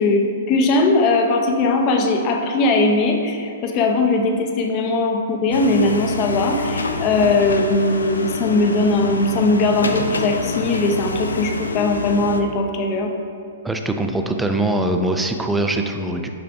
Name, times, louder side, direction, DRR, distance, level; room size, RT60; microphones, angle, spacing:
voice 1, 0.0-13.1, left 2 dB, 35° left, 3 dB, 0.7 m, -19 dB
sound 1, 5.5-12.4, left 2 dB, 85° left, 0.4 m, -27 dB
voice 2, 13.6-16.3, right 2 dB, 5° right, 4 dB, 0.4 m, -22 dB
7.0 x 5.6 x 2.6 m, 2.5 s
hypercardioid pair, 115°, 0 cm